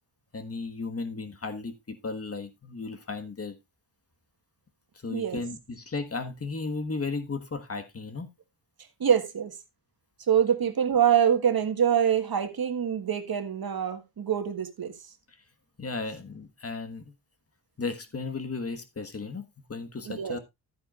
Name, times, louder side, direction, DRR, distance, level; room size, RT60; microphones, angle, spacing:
voice 1, 0.3-3.6 5.0-8.3 15.8-17.1 17.8-20.4, left 3 dB, 35° left, 1.5 m, -35 dB
voice 2, 5.1-5.4 9.0-9.5 10.3-14.9 20.0-20.4, right 8 dB, 60° right, 1.6 m, -25 dB
11.0 x 9.6 x 2.4 m
cardioid pair, 55°, 41 cm